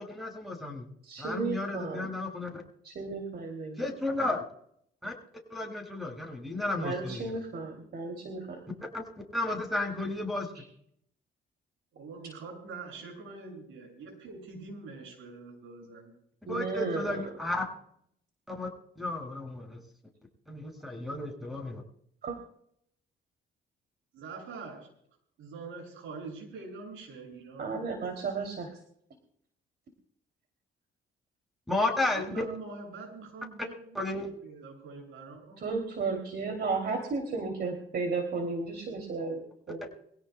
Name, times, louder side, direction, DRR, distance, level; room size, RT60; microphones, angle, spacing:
voice 1, 0.0-0.9 1.2-2.6 3.8-4.4 5.0-5.1 5.5-7.2 8.9-9.0 9.3-10.5 16.5-17.7 18.5-18.7 19.0-19.8 20.5-21.8 31.7-32.5 33.9-34.3 39.8-39.9, left 2 dB, ahead, 2 dB, 7.0 m, -33 dB
voice 2, 1.0-2.1 2.8-3.9 6.8-8.6 10.5-10.6 16.5-17.2 22.2-22.4 27.6-28.7 35.6-39.8, right 4 dB, 55° right, 3 dB, 3.1 m, -34 dB
voice 3, 11.9-16.2 24.1-24.8 25.4-27.8 32.1-35.6, right 4 dB, 85° right, 1 dB, 7.5 m, -44 dB
24.5 x 17.0 x 2.3 m, 0.68 s
cardioid pair, 90°, 20 cm